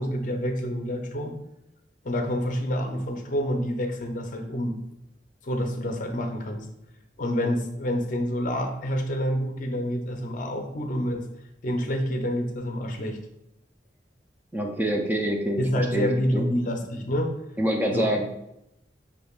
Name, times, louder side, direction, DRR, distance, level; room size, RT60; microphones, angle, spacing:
voice 1, 0.0-1.4 2.0-4.8 5.4-6.7 7.2-11.2 11.6-13.2 15.6-17.4 17.9-18.1, equal, 45° left, 4 dB, 0.5 m, -28 dB
voice 2, 14.5-16.5 17.6-18.3, equal, 10° right, 2 dB, 0.4 m, -26 dB
5.0 x 3.3 x 2.3 m, 0.85 s
head